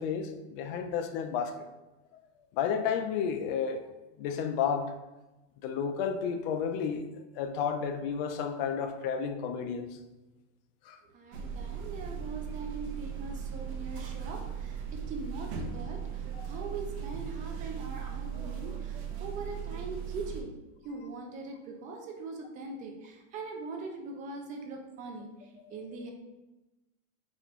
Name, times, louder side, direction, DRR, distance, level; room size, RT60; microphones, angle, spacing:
voice 1, 0.0-1.7 2.5-3.8 4.2-4.9 5.6-10.0 10.8-11.0 16.3-16.6 25.6-25.9, left 7 dB, 50° left, 7 dB, 0.5 m, -32 dB
voice 2, 11.1-20.6 20.8-26.1, right 3 dB, 20° right, 2 dB, 0.3 m, -42 dB
sound 1, 11.3-20.4, right 8 dB, 60° right, 0.7 m, -38 dB
4.3 x 3.4 x 3.0 m, 1.0 s
supercardioid pair, 160°, 37 cm